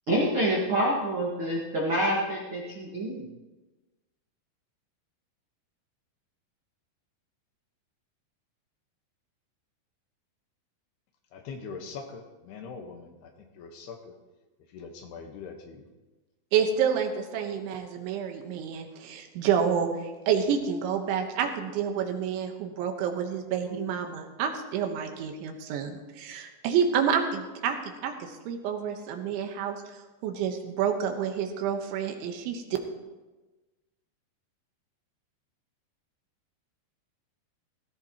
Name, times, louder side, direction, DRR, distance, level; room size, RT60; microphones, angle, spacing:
voice 1, 0.1-3.3 23.7-23.8, right 1 dB, 50° right, -4 dB, 1.5 m, -27 dB
voice 2, 11.3-14.1 14.7-15.9, left 5 dB, 70° left, 3 dB, 3.1 m, -42 dB
voice 3, 16.5-29.8 30.2-32.6, right 7 dB, 85° right, 4 dB, 3.6 m, -29 dB
17.0 x 16.0 x 3.0 m, 1.2 s
omnidirectional pair, 5.3 m